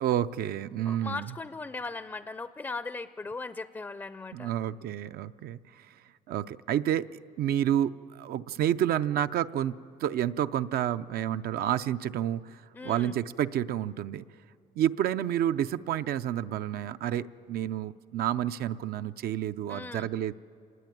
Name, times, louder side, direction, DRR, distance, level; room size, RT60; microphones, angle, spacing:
voice 1, 0.0-1.3 4.3-6.0 6.3-14.2 14.8-20.3, right 11 dB, 65° right, 11 dB, 0.6 m, -30 dB
voice 2, 0.8-4.5 12.7-13.1 19.7-20.1, left 3 dB, 15° left, 13 dB, 0.5 m, -38 dB
26.5 x 20.5 x 9.2 m, 2.5 s
cardioid pair, 110°, 17 cm